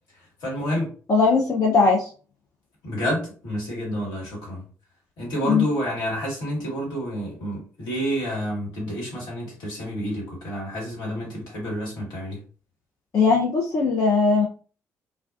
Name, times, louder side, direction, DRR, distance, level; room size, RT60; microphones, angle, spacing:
voice 1, 0.1-0.9 2.8-4.6 5.2-12.4, equal, 60° left, -4 dB, 1.3 m, -29 dB
voice 2, 1.1-2.1 5.4-5.7 13.1-14.5, left 4 dB, 40° left, -3 dB, 0.6 m, -19 dB
2.2 x 2.2 x 2.4 m, 0.40 s
figure-of-eight pair, 45°, 8 cm